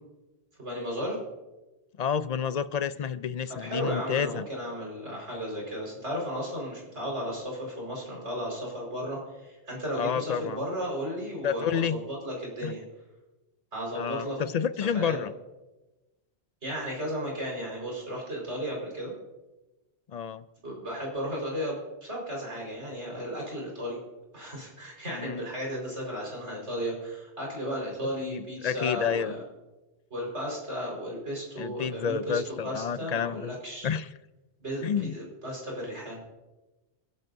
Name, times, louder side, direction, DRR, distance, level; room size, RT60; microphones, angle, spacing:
voice 1, 0.6-1.2 3.6-12.8 13.7-14.4 14.9-15.2 16.6-19.1 20.6-24.0 24.3-29.4 30.1-33.9 34.6-36.2, equal, 85° right, -2 dB, 5.3 m, -34 dB
voice 2, 2.0-4.5 10.0-10.6 11.4-12.0 12.6-12.7 14.0-15.3 20.1-20.4 25.2-25.4 28.3-29.3 31.6-33.5 33.8-34.1 34.8-35.2, left 7 dB, 50° left, 14 dB, 0.5 m, -29 dB
28.0 x 12.0 x 2.7 m, 1.1 s
omnidirectional pair, 1.1 m